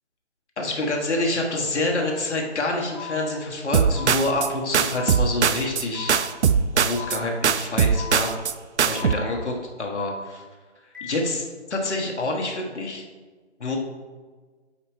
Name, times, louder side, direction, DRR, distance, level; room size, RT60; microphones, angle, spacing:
voice 1, 0.6-6.2 6.7-8.3 8.9-10.4 11.0-13.0 13.6-13.8, left 2 dB, 70° left, 0 dB, 1.4 m, -27 dB
sound 1, 2.9-3.1 3.9-4.1 4.9-5.1 5.9-6.1 6.9-7.1 7.9-8.1 8.9-9.1 9.9-10.1 10.9-11.1, left 8 dB, 15° left, 0.9 m, -37 dB
sound 2, 3.7-4.5 4.7-5.8 6.1-7.2 7.4-8.5 8.8-9.1, right 6 dB, 70° right, 0.5 m, -21 dB
8.5 x 4.2 x 3.5 m, 1.4 s
hypercardioid pair, 175°, 36 cm